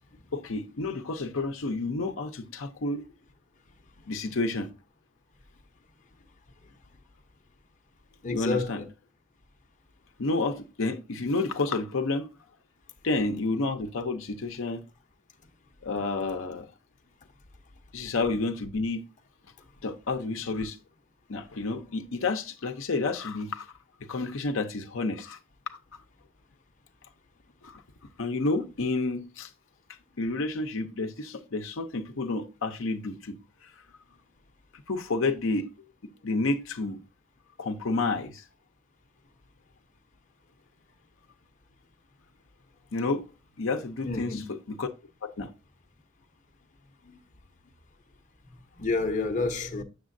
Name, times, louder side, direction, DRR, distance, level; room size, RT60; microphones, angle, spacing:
voice 1, 0.3-3.0 4.1-4.7 8.3-8.8 10.2-12.3 13.0-14.8 15.8-16.7 17.9-19.0 19.8-20.8 21.3-23.7 24.1-25.4 27.6-27.8 28.2-29.5 30.2-33.4 33.6-33.7 34.9-35.7 36.0-37.0 37.6-38.4 42.9-43.2 43.6-44.4 44.7-44.9 45.2-45.5, left 3 dB, 70° left, 0.7 m, -30 dB
voice 2, 8.2-8.9 44.0-44.5 47.0-47.2 48.7-49.8, left 3 dB, 35° left, 0.8 m, -29 dB
7.3 x 6.6 x 2.6 m
head